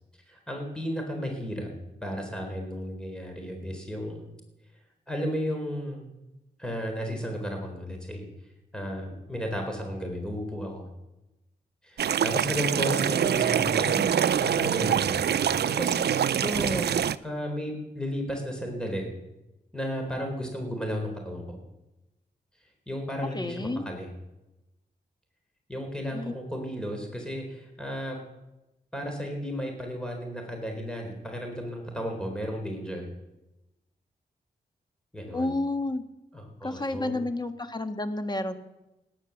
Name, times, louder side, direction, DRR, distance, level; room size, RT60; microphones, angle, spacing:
voice 1, 0.3-1.7 2.0-4.2 5.1-6.1 6.6-8.3 8.7-10.9 11.8-19.1 19.7-21.6 22.9-24.1 25.7-28.2 28.9-33.1 35.1-35.5 36.3-37.2, equal, 5° left, 2 dB, 4.0 m, -34 dB
sound 1, 12.0-17.2, right 9 dB, 75° right, 0.5 m, -25 dB
voice 2, 23.3-23.9 26.1-26.3 35.3-36.0 36.6-38.6, left 2 dB, 25° left, 8 dB, 1.6 m, -30 dB
18.0 x 10.5 x 7.2 m, 0.99 s
cardioid pair, 70°, 18 cm